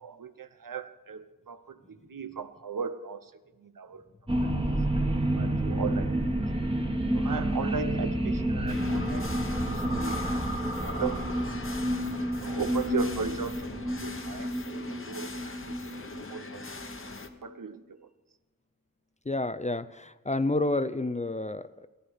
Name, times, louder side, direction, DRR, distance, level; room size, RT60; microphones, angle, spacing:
voice 1, 0.0-3.3 3.6-4.0 4.7-4.8 5.4-6.2 7.1-10.5 10.8-11.2 11.6-11.8 12.3-14.5 14.8-16.0 16.3-16.6 17.4-18.1, right 6 dB, 70° right, 11 dB, 0.8 m, -37 dB
sound 1, 4.3-17.1, right 1 dB, 15° right, 1.4 m, -30 dB
sound 2, 8.7-17.3, left 3 dB, 40° left, 1.0 m, -42 dB
voice 2, 19.3-21.9, left 2 dB, 20° left, 12 dB, 0.4 m, -30 dB
15.0 x 10.0 x 5.5 m, 1.1 s
wide cardioid pair, 60°, 34 cm